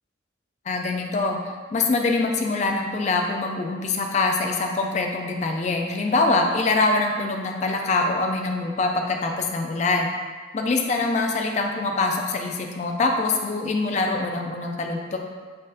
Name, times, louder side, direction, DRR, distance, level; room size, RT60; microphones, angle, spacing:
voice 1, 0.7-1.4 1.7-10.1 10.5-15.2, left 3 dB, 40° left, 2 dB, 0.3 m, -24 dB
4.2 x 3.6 x 2.5 m, 1.5 s
head